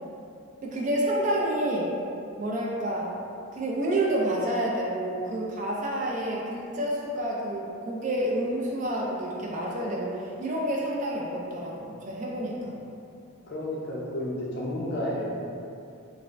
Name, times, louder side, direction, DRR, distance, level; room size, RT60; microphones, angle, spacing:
voice 1, 0.6-1.9 2.4-3.1 3.5-12.8, right 1 dB, 35° right, -4 dB, 0.3 m, -29 dB
voice 2, 13.5-15.6, left 1 dB, 50° left, -5 dB, 0.5 m, -31 dB
3.2 x 2.0 x 2.5 m, 2.5 s
head